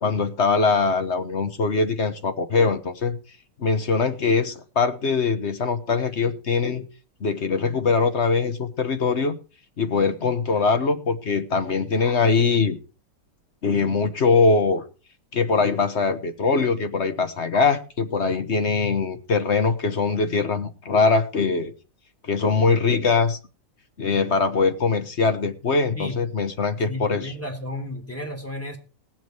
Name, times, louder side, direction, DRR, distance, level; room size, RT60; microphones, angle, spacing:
voice 1, 0.0-3.2 3.6-6.9 7.2-9.3 9.8-12.8 13.6-14.8 15.3-21.7 22.2-23.4 24.0-27.3, left 4 dB, 40° left, 10 dB, 1.3 m, -22 dB
voice 2, 26.9-28.8, left 1 dB, 5° left, 3 dB, 3.3 m, -33 dB
19.5 x 7.6 x 4.6 m, 0.35 s
omnidirectional pair, 1.9 m